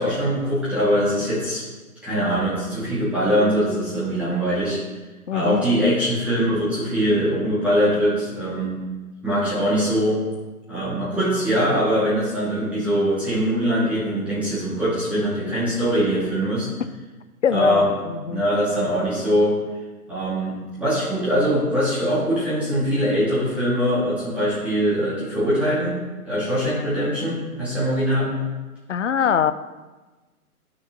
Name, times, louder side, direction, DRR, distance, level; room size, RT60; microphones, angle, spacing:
voice 1, 0.0-1.6 2.0-4.8 5.3-8.8 9.2-10.2 10.7-16.7 17.5-17.9 18.3-19.6 20.1-28.3, equal, 5° right, -10 dB, 2.0 m, -22 dB
voice 2, 5.3-5.6 17.4-18.4 28.9-29.5, left 8 dB, 55° left, 13 dB, 0.5 m, -22 dB
11.5 x 6.2 x 3.0 m, 1.2 s
figure-of-eight pair, 135°, 45 cm